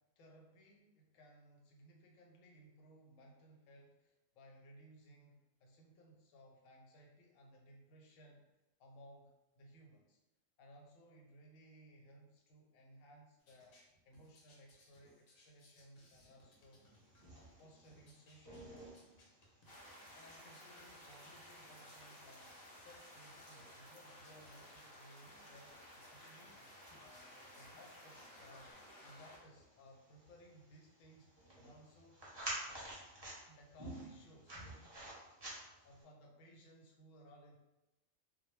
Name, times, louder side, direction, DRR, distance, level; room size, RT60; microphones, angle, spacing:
voice 1, 0.0-8.5 8.8-10.2 10.6-13.8 14.1-16.9 17.3-19.3 20.1-26.7 27.0-32.2 33.5-34.7 35.8-37.6, equal, 80° left, 0 dB, 1.0 m, -61 dB
sound 1, 13.4-28.7, left 1 dB, 60° left, 0.8 m, -69 dB
sound 2, 16.6-36.0, right 1 dB, 30° right, 0.4 m, -53 dB
sound 3, 19.6-29.4, equal, 30° left, 0.4 m, -57 dB
2.1 x 2.0 x 3.0 m, 0.95 s
omnidirectional pair, 1.3 m